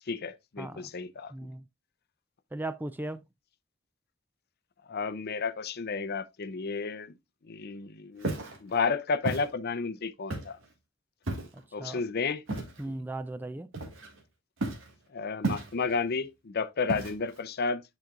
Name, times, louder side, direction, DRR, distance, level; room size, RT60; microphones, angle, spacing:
voice 1, 0.1-1.3 4.9-7.2 7.4-10.6 11.7-12.4 12.8-12.9 15.1-17.8, left 4 dB, 50° left, 0.6 m, -32 dB
voice 2, 0.6-0.9 1.3-1.6 2.5-3.2 11.8-12.0 12.8-13.7, right 2 dB, 10° right, 0.3 m, -37 dB
Walk footsteps, 8.2-8.6 9.2-9.5 10.3-10.6 11.3-11.6 12.5-12.8 13.7-14.2 14.6-14.9 15.4-16.0 16.9-17.4, right 2 dB, 65° right, 1.9 m, -33 dB
9.1 x 5.2 x 2.4 m
head